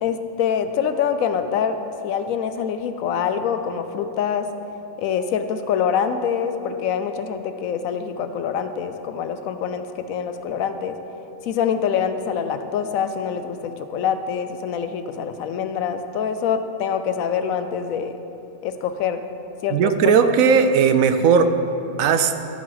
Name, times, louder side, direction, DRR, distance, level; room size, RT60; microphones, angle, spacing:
voice 1, 0.0-4.5 5.0-11.0 11.5-18.2 18.6-19.2 19.6-19.9, left 7 dB, 85° left, 9 dB, 1.1 m, -25 dB
voice 2, 19.7-21.5 22.0-22.3, right 6 dB, 80° right, 9 dB, 1.1 m, -17 dB
13.5 x 7.5 x 4.0 m, 3.0 s
omnidirectional pair, 1.4 m